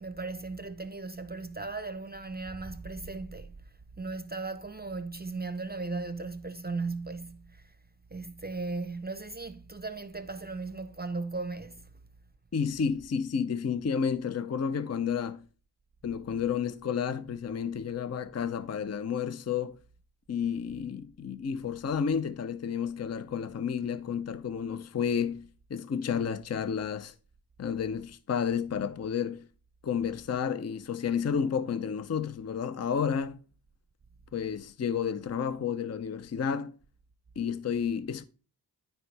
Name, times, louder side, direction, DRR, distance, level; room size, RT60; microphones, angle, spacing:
voice 1, 0.0-7.7 8.1-11.9, right 3 dB, 25° right, 0.6 m, -37 dB
voice 2, 12.5-15.5 16.0-19.8 20.3-27.1 27.6-29.5 29.8-33.4 34.3-36.8 37.4-38.2, left 7 dB, 40° left, 0.5 m, -31 dB
12.0 x 4.5 x 3.3 m
cardioid pair, 60°, 40 cm